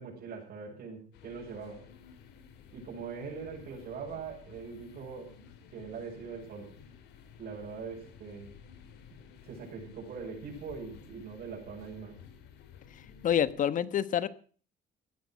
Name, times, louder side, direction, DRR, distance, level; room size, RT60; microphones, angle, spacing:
voice 1, 0.0-1.8 2.7-5.3 5.7-6.7 7.4-8.5 9.4-12.2, right 5 dB, 60° right, -2 dB, 7.1 m, -42 dB
sound 1, 1.1-13.5, left 7 dB, 85° left, 3.0 m, -54 dB
voice 2, 13.2-14.3, left 9 dB, 50° left, 16 dB, 1.2 m, -27 dB
15.5 x 11.5 x 6.2 m, 0.42 s
cardioid pair, 110°, 17 cm